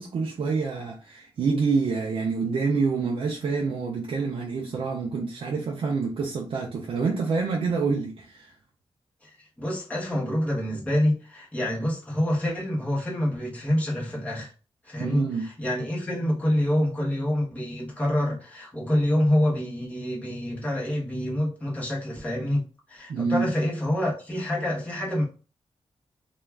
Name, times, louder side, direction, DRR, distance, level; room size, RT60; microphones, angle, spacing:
voice 1, 0.0-8.5 15.0-15.5 23.1-23.5, right 4 dB, 60° right, 0.4 m, -27 dB
voice 2, 9.6-14.5 14.8-25.2, left 1 dB, 15° left, 1.0 m, -27 dB
2.3 x 2.3 x 3.2 m
wide cardioid pair, 160°, 10 cm